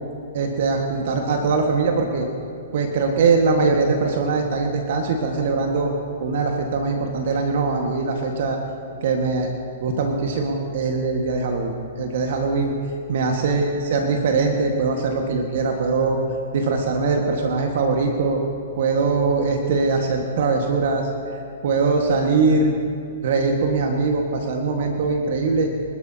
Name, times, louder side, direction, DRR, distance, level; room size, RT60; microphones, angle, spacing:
voice 1, 0.3-2.3 2.7-5.9 6.2-8.6 9.0-9.5 9.8-12.7 13.1-16.2 16.5-18.4 18.8-21.1 21.6-22.7 23.2-25.7, right 4 dB, 60° right, 2 dB, 1.6 m, -21 dB
25.0 x 12.5 x 2.9 m, 2.6 s
hypercardioid pair, 120°, 0 cm